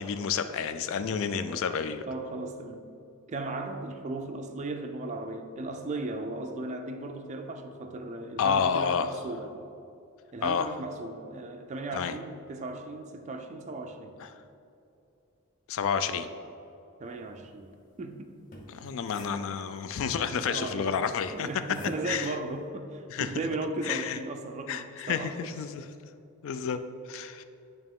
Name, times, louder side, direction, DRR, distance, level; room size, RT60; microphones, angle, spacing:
voice 1, 0.0-2.1 8.4-9.1 10.4-10.7 11.9-12.1 14.2-14.3 15.7-16.3 18.7-21.5 22.0-22.3 23.1-23.3 23.8-24.2 24.7-25.9 26.4-26.8 27.1-27.4, left 6 dB, 60° left, 0.3 m, -30 dB
voice 2, 2.1-2.9 3.3-9.6 10.3-14.2 17.0-17.7 18.0-18.3 20.3-21.0 21.3-25.5, right 2 dB, 30° right, 0.3 m, -36 dB
sound 1, 18.3-20.0 21.2-22.3, equal, 35° left, 0.8 m, -48 dB
8.8 x 2.9 x 3.6 m
head